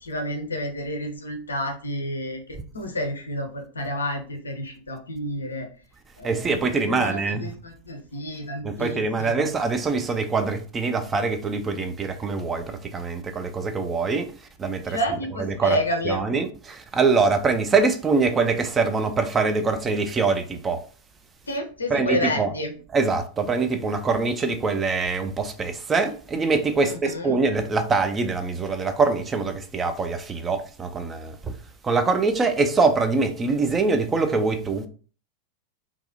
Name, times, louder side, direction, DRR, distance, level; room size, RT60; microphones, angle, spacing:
voice 1, 0.0-5.7 6.2-9.4 14.9-16.2 21.5-22.7 26.8-27.4, left 1 dB, 75° left, 0.6 m, -30 dB
voice 2, 6.2-7.5 8.6-14.3 14.6-15.0 15.4-15.8 16.0-20.8 21.9-22.5 22.9-31.5 31.8-34.9, right 4 dB, 20° right, 0.3 m, -24 dB
2.3 x 2.0 x 2.6 m
figure-of-eight pair, 90°, 0 cm